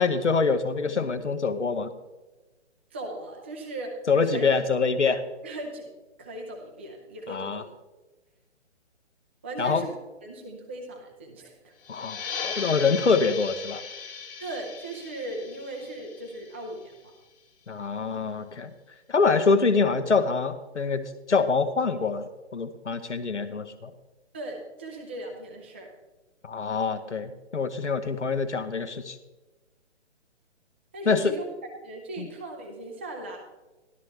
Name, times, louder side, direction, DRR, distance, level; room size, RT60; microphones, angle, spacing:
voice 1, 0.0-1.9 4.1-5.2 7.3-7.6 9.6-9.9 11.9-12.2 12.4-13.8 17.7-18.7 19.1-23.9 26.4-29.2 31.0-31.3 32.2-32.3, left 4 dB, 75° left, 8 dB, 1.2 m, -25 dB
voice 2, 2.9-4.0 4.2-4.4 5.4-5.9 6.2-7.6 9.4-9.9 10.2-11.7 14.4-17.1 24.3-25.9 30.9-33.4, right 2 dB, 10° right, 1 dB, 0.4 m, -38 dB
sound 1, 11.8-17.1, left 5 dB, 50° left, 1.6 m, -38 dB
13.0 x 12.5 x 3.3 m, 1.1 s
figure-of-eight pair, 140°, 35 cm